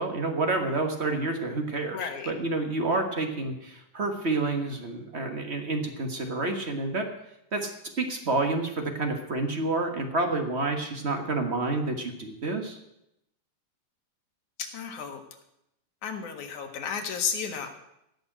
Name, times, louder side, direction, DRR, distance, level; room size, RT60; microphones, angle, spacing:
voice 1, 0.0-7.1 7.5-12.8, right 2 dB, 50° right, 4 dB, 0.7 m, -29 dB
voice 2, 1.9-2.3 14.7-15.2 16.0-17.7, left 7 dB, 75° left, 4 dB, 3.0 m, -33 dB
16.5 x 6.6 x 9.0 m, 0.83 s
omnidirectional pair, 3.5 m